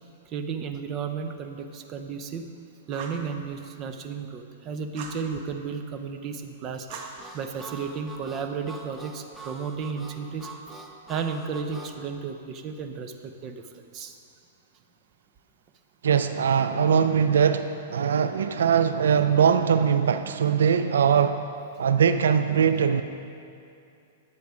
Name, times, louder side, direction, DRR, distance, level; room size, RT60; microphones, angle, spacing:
voice 1, 0.3-2.5 2.9-6.9 7.3-10.5 11.1-13.6 13.9-14.2, right 6 dB, 30° right, 7 dB, 0.8 m, -33 dB
Fire, 2.9-3.3 4.9-5.2 6.9-7.8, right 5 dB, 45° right, 1.3 m, -41 dB
Harmonica, 6.9-12.0, right 3 dB, 5° right, 0.9 m, -43 dB
voice 2, 16.0-21.5 21.8-23.0, right 7 dB, 90° right, 10 dB, 0.4 m, -21 dB
10.5 x 8.3 x 5.0 m, 2.6 s
hypercardioid pair, 140°, 0 cm